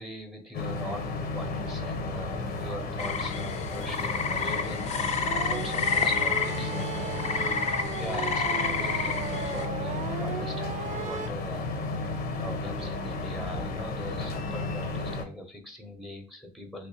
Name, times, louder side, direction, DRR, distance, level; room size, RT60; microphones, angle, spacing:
voice 1, 0.0-5.1 5.4-7.3 8.0-11.7 12.3-16.9, left 1 dB, ahead, 5 dB, 0.7 m, -41 dB
sound 1, 0.5-15.2, left 3 dB, 70° left, 0.8 m, -33 dB
sound 2, 3.0-9.7, left 5 dB, 40° left, 0.5 m, -30 dB
sound 3, 5.2-11.3, right 6 dB, 45° right, 0.4 m, -37 dB
3.2 x 3.0 x 2.9 m, 0.41 s
cardioid pair, 110°, 17 cm